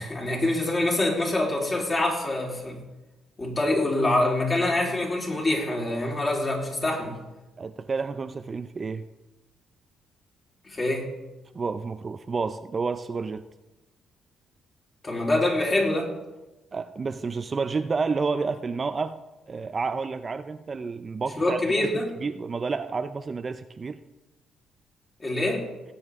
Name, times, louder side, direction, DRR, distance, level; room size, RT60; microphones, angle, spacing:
voice 1, 0.0-2.8 3.4-7.2 10.6-11.1 15.0-16.1 21.4-22.1 25.2-25.6, left 2 dB, 30° left, -2 dB, 3.8 m, -25 dB
voice 2, 7.6-9.1 11.5-13.4 16.7-19.2 19.5-21.9 22.2-24.0, right 4 dB, 35° right, 9 dB, 0.5 m, -30 dB
18.5 x 8.7 x 3.7 m, 1.0 s
cardioid pair, 90°, 0 cm